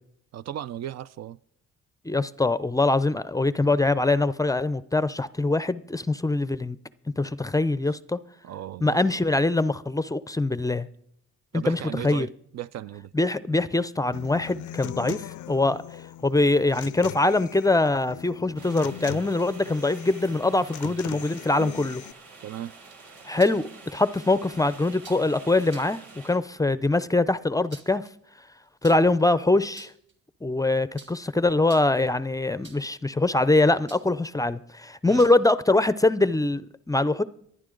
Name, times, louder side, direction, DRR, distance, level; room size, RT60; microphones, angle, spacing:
voice 1, 0.3-1.4 8.4-9.0 11.5-13.1 22.4-22.7 35.1-35.3, right 12 dB, 60° right, 0.5 m, -36 dB
voice 2, 2.0-6.8 7.2-8.2 8.8-10.9 11.5-12.3 13.1-15.8 16.2-22.0 23.3-28.1 28.8-29.9 30.4-37.2, left 2 dB, 10° left, 0.5 m, -23 dB
Human voice / Acoustic guitar, 14.1-22.1, left 14 dB, 75° left, 0.5 m, -40 dB
sound 1, 18.6-26.4, right 3 dB, 80° right, 3.2 m, -48 dB
sound 2, 22.7-23.7 25.0-25.3 25.6-26.0 27.4-28.1 28.8-29.2 29.6-30.1 31.0-31.3 31.6-32.1 32.6-33.0 33.9-34.2 35.2-35.5, right 4 dB, 40° right, 2.3 m, -49 dB
25.0 x 9.7 x 3.8 m
cardioid pair, 90°, 30 cm